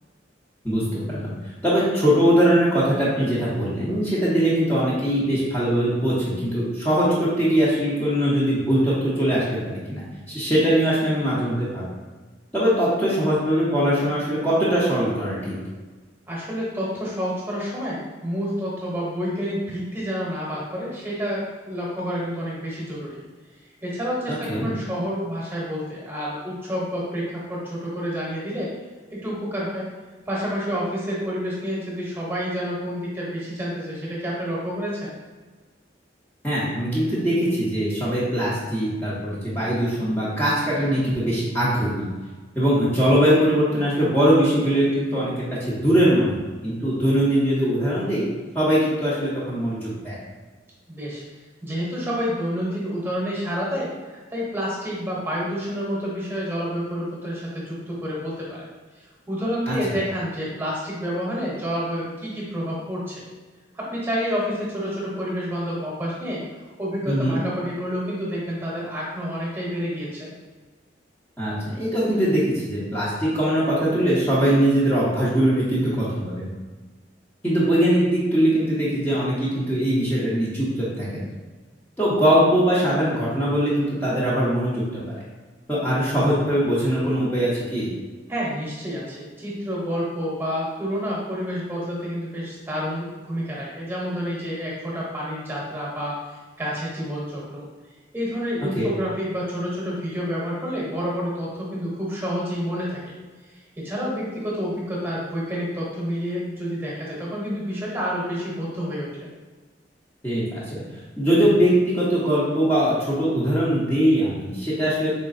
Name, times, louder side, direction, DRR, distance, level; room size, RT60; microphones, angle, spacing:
voice 1, 0.6-1.3 1.6-11.9 12.5-15.6 24.3-24.7 36.4-42.1 42.5-46.3 46.6-48.2 48.5-50.2 59.7-59.8 67.1-67.4 71.4-76.5 77.4-81.3 82.0-85.0 85.7-87.9 98.7-98.9 110.2-110.6 111.2-115.1, equal, 10° left, -10 dB, 0.7 m, -21 dB
voice 2, 16.3-23.2 23.8-28.7 29.1-29.9 30.3-35.1 50.9-51.2 51.6-58.6 59.3-63.2 63.7-66.4 66.8-70.3 88.3-97.7 98.1-103.0 103.5-109.3, equal, 10° right, -5 dB, 1.0 m, -29 dB
4.0 x 3.2 x 2.6 m, 1.3 s
head